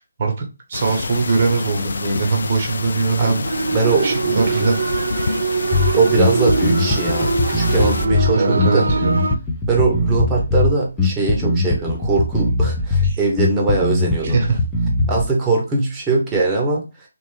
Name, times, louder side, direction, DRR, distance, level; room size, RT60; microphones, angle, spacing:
voice 1, 0.0-3.4 4.0-4.8 8.3-9.1 13.0-13.2 14.2-14.6, right 4 dB, 40° right, 2 dB, 0.9 m, -21 dB
sound 1, 0.7-8.1, left 4 dB, 65° left, 0.3 m, -28 dB
sound 2, 3.4-9.4, right 4 dB, 60° right, 0.3 m, -23 dB
voice 2, 3.7-4.7 5.9-8.9 9.7-14.4 15.1-16.9, right 3 dB, 15° right, -1 dB, 1.0 m, -21 dB
Bass guitar, 5.7-15.3, left 2 dB, 10° left, 0.6 m, -20 dB
3.2 x 2.9 x 3.1 m, 0.29 s
figure-of-eight pair, 150°, 0 cm